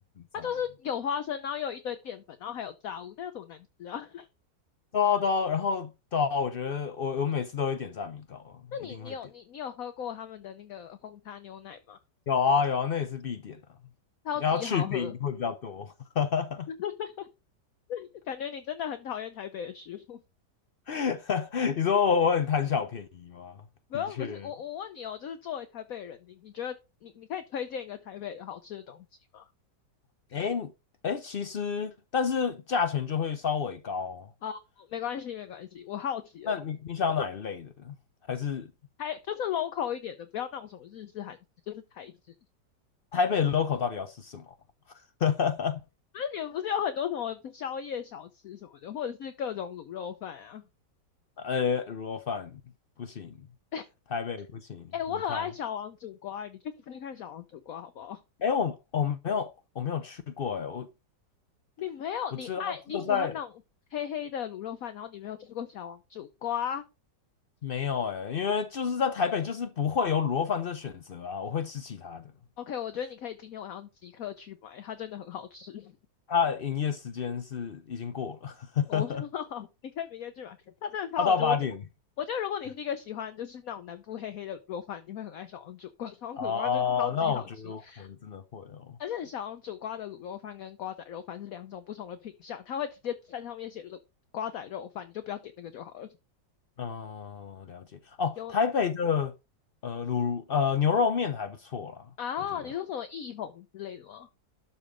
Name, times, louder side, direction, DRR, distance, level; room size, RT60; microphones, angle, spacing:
voice 1, 0.4-4.3 8.7-12.0 14.2-15.1 16.7-17.3 17.9-20.2 23.9-26.7 27.0-29.0 29.3-29.4 34.4-36.6 39.0-41.4 41.7-42.1 46.1-50.6 53.7-53.8 54.9-58.2 61.8-63.5 63.9-66.8 72.6-75.9 78.9-80.6 80.8-81.5 82.2-88.1 89.0-94.0 94.3-96.1 98.4-98.6 102.2-104.3, left 9 dB, 60° left, 1.1 m, -36 dB
voice 2, 4.9-8.5 8.9-9.1 12.3-13.6 14.4-16.7 20.9-23.6 24.2-24.4 30.3-30.7 31.0-34.3 36.5-37.9 38.3-38.7 43.1-44.4 45.2-45.8 51.4-52.6 53.0-53.3 54.1-54.9 55.3-55.4 58.4-59.5 59.8-60.9 62.5-62.6 62.9-63.4 67.6-72.2 76.3-79.2 81.2-81.8 86.4-88.9 96.8-97.8 98.2-99.3 99.8-102.0, left 6 dB, 80° left, 0.5 m, -29 dB
12.5 x 4.3 x 5.0 m
omnidirectional pair, 1.9 m